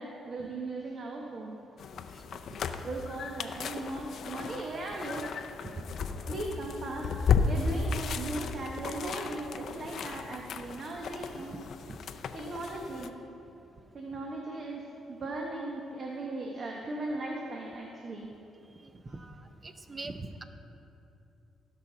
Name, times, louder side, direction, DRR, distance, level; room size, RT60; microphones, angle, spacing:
voice 1, 0.0-1.6 2.8-5.3 6.3-7.1 7.4-11.6 12.3-13.1 13.9-18.3, right 2 dB, 50° right, -1 dB, 1.0 m, -38 dB
sound 1, 1.8-13.1, left 5 dB, 65° left, 0.5 m, -34 dB
voice 2, 18.8-20.4, right 3 dB, 30° right, 8 dB, 0.6 m, -42 dB
16.0 x 5.8 x 3.9 m, 2.8 s
cardioid pair, 90°, 0 cm